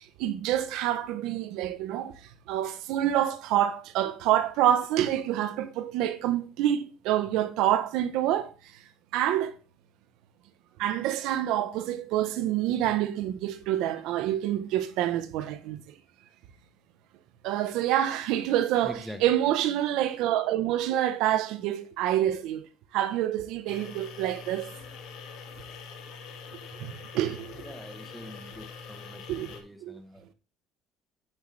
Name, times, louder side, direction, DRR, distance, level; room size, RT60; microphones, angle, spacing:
voice 1, 0.2-2.1 2.5-8.5 9.1-9.5 10.8-15.8 17.4-22.7 22.9-24.7 26.8-27.5 29.3-29.5 29.8-29.9, right 12 dB, 65° right, 0.8 m, -27 dB
voice 2, 18.8-19.2 27.6-30.3, equal, ahead, 1.0 m, -44 dB
sound 1, 23.7-29.6, left 5 dB, 60° left, 2.0 m, -44 dB
9.7 x 8.0 x 3.2 m
cardioid pair, 175°, 0 cm